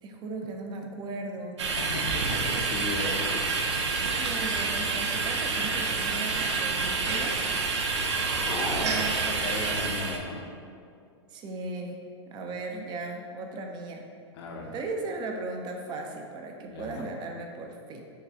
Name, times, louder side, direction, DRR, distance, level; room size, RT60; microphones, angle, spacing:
voice 1, 0.0-1.6 4.2-7.4 8.7-9.5 11.3-12.0 12.3-14.1 14.7-18.0, right 3 dB, 30° right, 3 dB, 0.5 m, -37 dB
sound 1, 1.6-10.2, right 4 dB, 80° right, 0.5 m, -28 dB
voice 2, 1.8-3.6 8.4-9.0 9.3-10.4 14.3-14.7 16.7-17.1, left 3 dB, 60° left, 0 dB, 0.8 m, -36 dB
sound 2, 7.1-10.9, left 1 dB, 15° left, 0.6 m, -40 dB
6.4 x 2.3 x 2.7 m, 2.2 s
hypercardioid pair, 110°, 15 cm